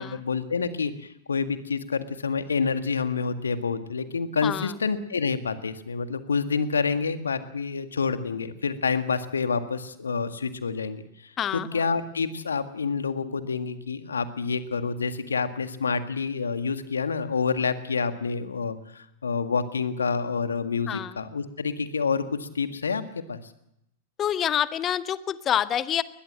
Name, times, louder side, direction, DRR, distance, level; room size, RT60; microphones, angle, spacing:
voice 1, 0.0-23.4, left 5 dB, 75° left, 9 dB, 1.8 m, -28 dB
voice 2, 4.4-4.7 11.4-11.7 20.9-21.1 24.2-26.0, left 10 dB, 25° left, 15 dB, 1.0 m, -27 dB
21.0 x 21.0 x 7.6 m, 0.81 s
figure-of-eight pair, 100°, 0 cm